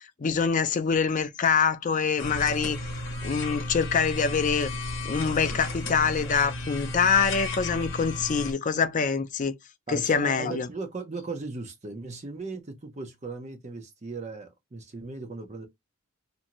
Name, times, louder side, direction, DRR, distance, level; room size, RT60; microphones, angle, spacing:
voice 1, 0.2-2.8 3.2-4.7 5.1-9.5 9.9-10.7, left 6 dB, 35° left, 0.4 m, -25 dB
sound 1, 2.2-8.5, left 2 dB, 55° left, 0.8 m, -34 dB
voice 2, 9.9-15.7, right 3 dB, 30° right, 0.6 m, -37 dB
2.6 x 2.5 x 2.9 m
head